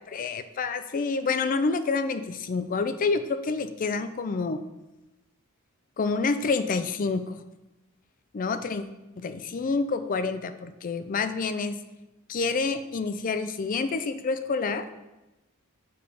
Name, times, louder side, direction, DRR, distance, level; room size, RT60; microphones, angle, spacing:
voice 1, 0.1-4.6 6.0-7.4 8.3-8.8 9.2-11.8 12.3-14.8, left 4 dB, 40° left, 11 dB, 0.4 m, -28 dB
6.9 x 3.3 x 5.0 m, 1.0 s
head